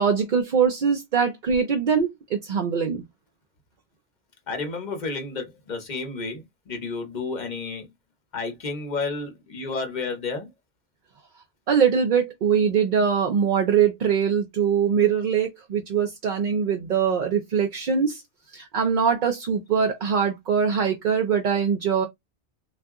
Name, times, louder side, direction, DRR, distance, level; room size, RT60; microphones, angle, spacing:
voice 1, 0.0-3.0 11.7-18.2 18.5-22.1, right 7 dB, 55° right, 0.6 m, -22 dB
voice 2, 4.5-7.9 8.3-10.5, left 4 dB, 50° left, 1.0 m, -31 dB
2.7 x 2.3 x 3.5 m
omnidirectional pair, 1.1 m